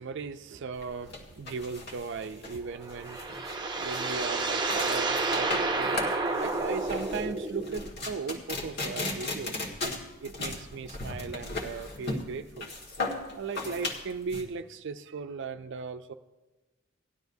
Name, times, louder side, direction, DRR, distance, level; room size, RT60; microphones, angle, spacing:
voice 1, 0.0-6.1 6.4-10.0 10.2-12.7 13.4-16.1, right 5 dB, 60° right, 9 dB, 0.4 m, -37 dB
sound 1, 0.8-14.4, left 2 dB, 50° left, 1.8 m, -37 dB
sound 2, 2.7-7.9, right 3 dB, 20° right, 0.7 m, -30 dB
18.0 x 11.5 x 2.7 m, 1.1 s
head